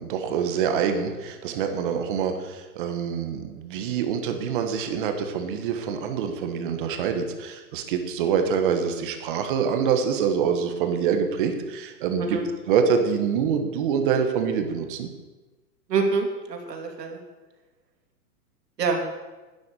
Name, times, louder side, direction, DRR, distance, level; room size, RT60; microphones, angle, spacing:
voice 1, 0.0-12.4 12.7-15.1, right 7 dB, 30° right, 6 dB, 1.4 m, -25 dB
voice 2, 12.2-12.5 15.9-17.2 18.8-19.0, right 4 dB, 75° right, 3 dB, 3.2 m, -26 dB
12.5 x 9.6 x 6.9 m, 1.2 s
hypercardioid pair, 165°, 49 cm